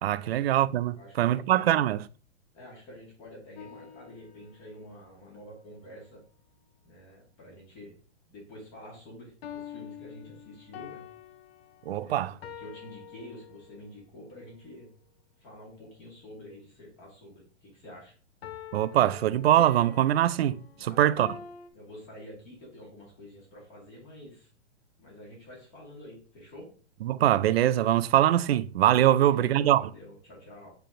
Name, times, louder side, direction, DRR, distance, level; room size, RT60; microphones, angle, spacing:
voice 1, 0.0-2.1 11.9-12.3 18.7-21.3 27.0-29.8, right 12 dB, 60° right, 0.5 m, -23 dB
voice 2, 0.9-1.7 2.5-6.2 6.8-7.9 8.3-11.1 12.0-14.9 15.4-18.1 20.7-21.4 21.7-24.5 25.0-26.7 29.1-30.7, left 1 dB, 25° left, 2.4 m, -48 dB
sound 1, 3.6-4.9 9.4-13.9 18.4-21.7, left 8 dB, 55° left, 0.9 m, -46 dB
7.6 x 3.5 x 3.8 m
hypercardioid pair, 160°, 36 cm